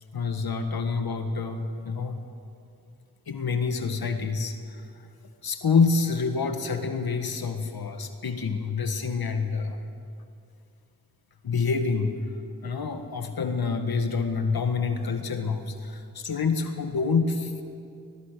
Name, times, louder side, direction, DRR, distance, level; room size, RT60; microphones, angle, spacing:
voice 1, 0.1-2.2 3.3-4.9 5.4-9.8 11.4-12.1 12.6-17.6, left 4 dB, 70° left, 7 dB, 1.6 m, -27 dB
22.0 x 19.5 x 6.8 m, 2.5 s
cardioid pair, 55°, 38 cm